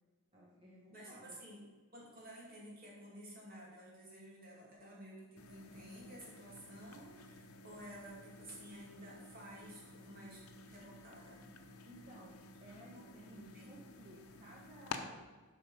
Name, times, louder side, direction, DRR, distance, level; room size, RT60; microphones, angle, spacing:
voice 1, 0.3-1.4 11.8-15.3, equal, 25° right, -4 dB, 0.9 m, -56 dB
voice 2, 0.9-1.6 1.9-11.5 12.8-13.9, right 1 dB, 40° right, -4 dB, 2.3 m, -53 dB
sound 1, 5.4-15.0, left 4 dB, 90° left, 0.7 m, -52 dB
7.5 x 5.3 x 4.7 m, 1.3 s
head